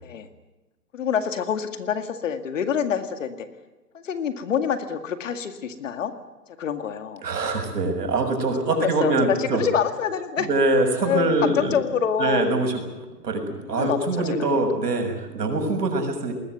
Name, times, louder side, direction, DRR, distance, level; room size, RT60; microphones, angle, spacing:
voice 1, 0.9-3.5 3.9-6.1 6.6-7.2 8.7-10.5 11.0-12.5 13.7-14.1 14.4-14.5, left 8 dB, 50° left, 8 dB, 2.1 m, -26 dB
voice 2, 7.2-9.6 10.4-11.7 12.2-12.7 13.2-16.3, right 2 dB, 75° right, 5 dB, 6.8 m, -23 dB
20.5 x 19.5 x 9.4 m, 1.1 s
hypercardioid pair, 165°, 48 cm